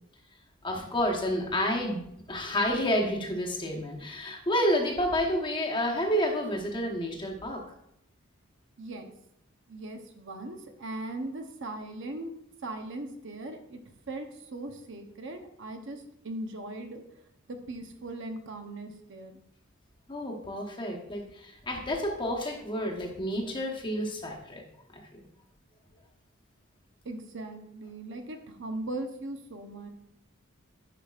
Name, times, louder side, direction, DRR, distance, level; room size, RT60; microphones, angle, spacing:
voice 1, 0.6-2.0 2.3-7.6 20.1-24.6 25.1-25.2, equal, 25° left, 0 dB, 1.0 m, -29 dB
voice 2, 8.8-9.1 9.7-12.3 12.6-13.8 14.1-17.0 17.5-19.4 27.0-29.9, right 2 dB, 60° right, 5 dB, 0.8 m, -39 dB
10.5 x 5.0 x 2.4 m, 0.77 s
head